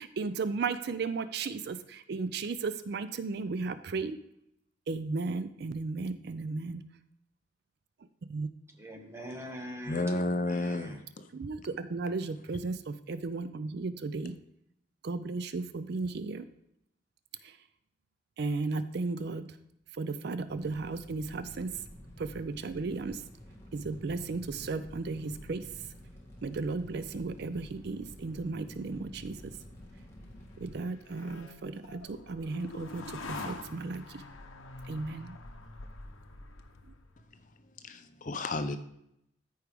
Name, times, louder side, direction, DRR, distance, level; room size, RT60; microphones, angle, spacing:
voice 1, 0.0-4.2 4.9-6.8 8.3-8.5 11.3-14.4 15.0-16.5 17.4-17.6 18.4-19.5 19.9-21.7 22.2-23.2 23.7-25.7 26.4-29.4 30.6-34.2 34.9-35.4, right 3 dB, 55° right, 12 dB, 0.4 m, -35 dB
voice 2, 8.7-11.0, equal, 15° right, 3 dB, 1.0 m, -43 dB
voice 3, 9.9-11.3 37.3-37.4 37.8-38.8, left 2 dB, 40° left, 10 dB, 0.5 m, -32 dB
Fire, 20.5-30.8, equal, 15° left, 1.4 m, -50 dB
sound 1, 29.9-37.3, left 3 dB, 85° left, 0.9 m, -46 dB
13.5 x 4.7 x 3.4 m, 0.79 s
head